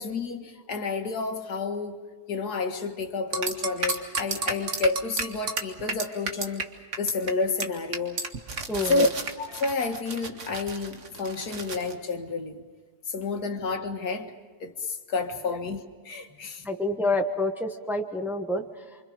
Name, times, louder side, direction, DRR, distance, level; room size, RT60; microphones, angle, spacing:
voice 1, 0.0-8.2 8.9-9.1 9.4-12.6 13.1-14.3 14.6-16.7, left 3 dB, 80° left, 2.1 m, -30 dB
sound 1, 3.3-6.6 6.9-7.3 7.6-7.7 7.9-11.9, right 4 dB, 50° right, 1.8 m, -32 dB
voice 2, 8.7-9.1 15.5-15.6 16.6-19.0, left 2 dB, ahead, 1.1 m, -28 dB
28.5 x 25.5 x 5.1 m
omnidirectional pair, 1.7 m